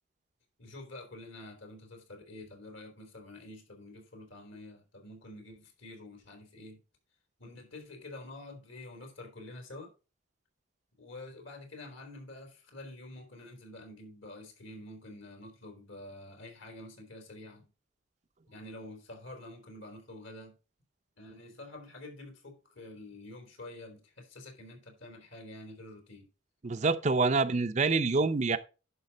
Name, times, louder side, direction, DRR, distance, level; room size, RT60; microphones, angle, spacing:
voice 1, 0.6-6.8 7.4-9.9 11.0-17.7 18.5-20.6 21.2-26.3, left 2 dB, 70° left, 3.4 m, -48 dB
voice 2, 26.6-28.6, right 3 dB, 35° right, 0.5 m, -26 dB
10.5 x 5.8 x 4.1 m
head